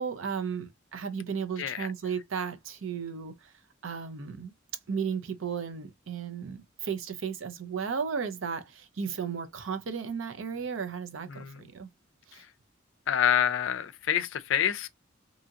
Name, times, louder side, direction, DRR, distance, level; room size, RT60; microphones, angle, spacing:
voice 1, 0.0-3.5 3.8-4.5 4.9-11.9 12.3-12.4, right 6 dB, 80° right, 0.5 m, -34 dB
voice 2, 11.3-11.6 13.1-14.9, left 9 dB, 70° left, 0.4 m, -27 dB
2.7 x 2.7 x 2.4 m
head